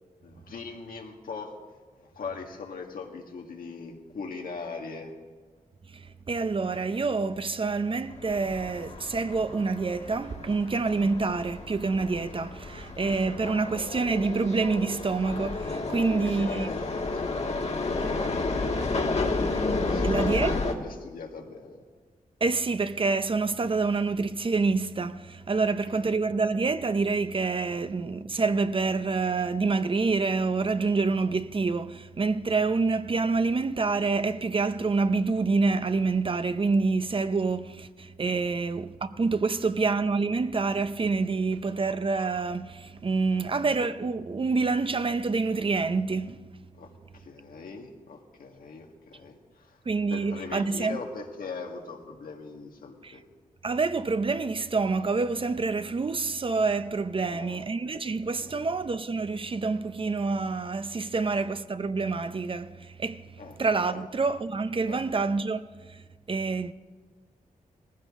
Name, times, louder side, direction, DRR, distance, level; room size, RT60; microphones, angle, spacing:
voice 1, 0.2-1.5 2.0-5.1 15.9-18.8 19.8-21.8 25.9-26.1 38.3-38.4 43.3-43.4 46.7-49.8 50.1-53.2 57.2-57.6 58.4-58.6 63.4-63.5 63.9-64.0 64.9-65.0, left 4 dB, 85° left, 1.8 m, -41 dB
voice 2, 5.9-16.7 19.5-19.6 20.0-20.6 22.4-46.5 49.9-51.0 53.0-53.2 53.6-63.3 63.6-66.7, right 4 dB, 40° right, 0.6 m, -27 dB
sound 1, 8.2-20.7, left 3 dB, 50° left, 1.5 m, -31 dB
19.5 x 15.0 x 3.7 m
cardioid pair, 75°, 14 cm